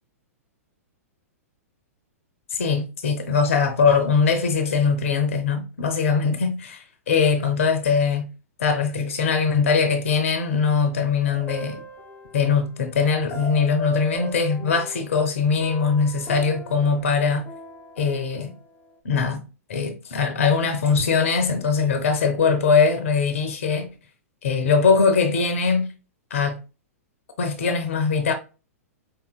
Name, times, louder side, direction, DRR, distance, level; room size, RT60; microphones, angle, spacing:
voice 1, 2.5-8.3 8.6-11.8 12.3-17.4 18.0-18.5 19.0-19.4 19.7-23.9 24.4-25.9 26.3-26.6 27.4-28.3, left 5 dB, 55° left, 0.7 m, -21 dB
sound 1, 11.2-12.7 13.3-15.3 15.6-18.6, equal, 20° left, 0.7 m, -37 dB
5.0 x 2.7 x 2.2 m
figure-of-eight pair, 105°, 8 cm